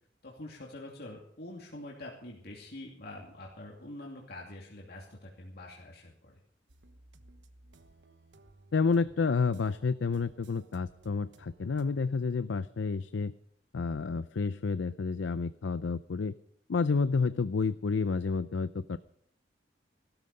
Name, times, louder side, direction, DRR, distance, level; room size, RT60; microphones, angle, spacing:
voice 1, 0.2-6.4, left 1 dB, 60° left, -2 dB, 2.6 m, -45 dB
sound 1, 6.7-11.9, right 2 dB, 80° right, 1.1 m, -58 dB
voice 2, 8.7-13.3 13.7-16.3 16.7-19.0, left 4 dB, 90° left, 15 dB, 0.5 m, -30 dB
16.0 x 13.0 x 5.5 m, 0.67 s
head